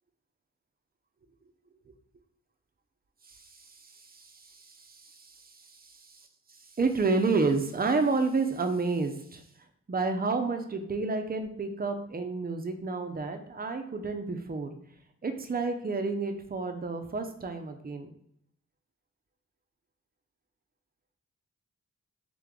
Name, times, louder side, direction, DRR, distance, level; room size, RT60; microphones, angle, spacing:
voice 1, 3.2-9.4 9.9-14.7 15.2-18.1, right 3 dB, 30° right, 6 dB, 0.6 m, -30 dB
3.4 x 3.3 x 3.7 m, 0.70 s
cardioid pair, 60°, 32 cm